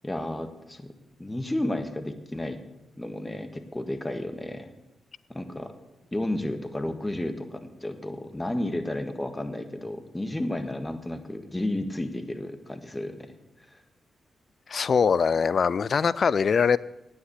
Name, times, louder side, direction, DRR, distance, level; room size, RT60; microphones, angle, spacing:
voice 1, 0.0-0.9 1.2-2.6 3.0-4.7 5.3-5.7 6.1-13.3 13.7-13.8, left 1 dB, 20° left, 8 dB, 1.6 m, -32 dB
voice 2, 14.7-16.8, left 6 dB, 60° left, 20 dB, 0.3 m, -22 dB
9.4 x 8.5 x 8.2 m, 0.94 s
hypercardioid pair, 40°, 0 cm